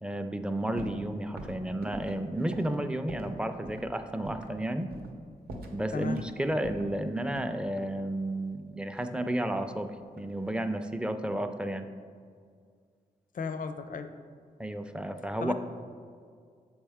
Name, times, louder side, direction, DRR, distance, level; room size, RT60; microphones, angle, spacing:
voice 1, 0.0-4.9 5.7-11.9 14.6-15.5, right 1 dB, 5° right, 8 dB, 0.4 m, -32 dB
sound 1, 0.8-1.1 1.4-3.4 3.6-3.9 4.3-4.6 4.9-5.2 5.5-6.3 6.6-8.0 8.9-9.9 10.1-10.6, right 1 dB, 75° right, 0.8 m, -43 dB
voice 2, 13.3-14.1 15.4-15.5, left 5 dB, 55° left, 9 dB, 0.5 m, -35 dB
7.0 x 4.4 x 3.5 m, 2.1 s
cardioid pair, 65°, 16 cm